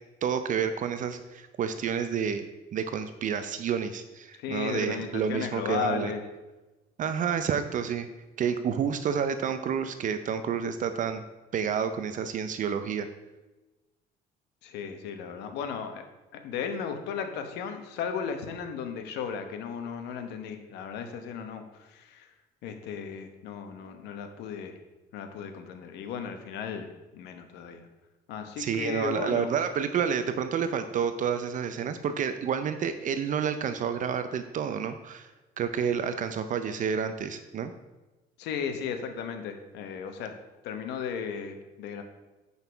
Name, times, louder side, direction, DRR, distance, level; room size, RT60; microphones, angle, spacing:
voice 1, 0.2-2.4 2.7-6.1 7.0-8.1 8.4-11.2 11.5-13.1 28.6-35.3 35.6-37.7, right 7 dB, 50° right, 9 dB, 0.6 m, -29 dB
voice 2, 4.4-6.2 14.6-16.0 16.3-22.3 22.6-24.8 25.1-27.9 28.3-29.5 38.4-40.3 40.6-42.0, left 7 dB, 85° left, 7 dB, 1.0 m, -35 dB
8.1 x 5.5 x 4.5 m, 1.1 s
cardioid pair, 110°, 17 cm